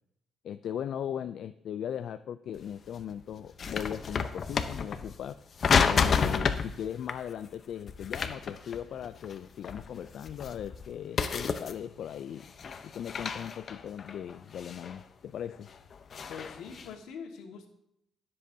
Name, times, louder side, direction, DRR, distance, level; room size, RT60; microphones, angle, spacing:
voice 1, 0.4-5.4 5.8-12.5 12.8-15.8, left 9 dB, 70° left, 11 dB, 0.4 m, -38 dB
sound 1, 2.6-2.7 3.0-5.2 5.6-6.7 7.0-7.2 7.9-9.4 9.6-10.9 11.2-12.1 12.4-15.0 15.5-16.9, left 6 dB, 50° left, 0.8 m, -30 dB
voice 2, 16.3-17.7, left 6 dB, 90° left, 3 dB, 1.8 m, -43 dB
19.5 x 7.7 x 2.8 m, 0.78 s
cardioid pair, 90°, 0 cm